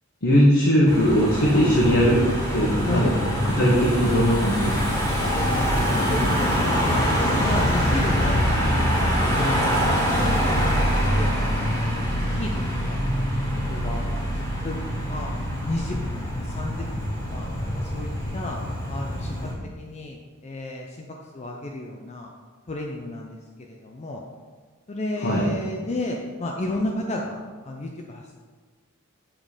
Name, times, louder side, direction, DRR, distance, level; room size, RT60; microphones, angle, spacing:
voice 1, 0.2-2.2 2.5-3.1 3.6-4.8 25.2-25.5, equal, 55° left, -5 dB, 1.1 m, -19 dB
Car passing by / Engine, 0.9-19.5, equal, 15° left, 1.7 m, -24 dB
voice 2, 2.9-3.4 5.2-8.9 9.3-11.9 12.2-12.5 12.9-13.0 13.3-15.4 15.6-17.5 17.7-18.6 18.9-19.4 19.8-21.1 21.3-22.3 22.7-24.2 24.9-28.3, left 1 dB, 30° left, 0 dB, 0.5 m, -33 dB
7.3 x 3.8 x 5.0 m, 1.5 s
head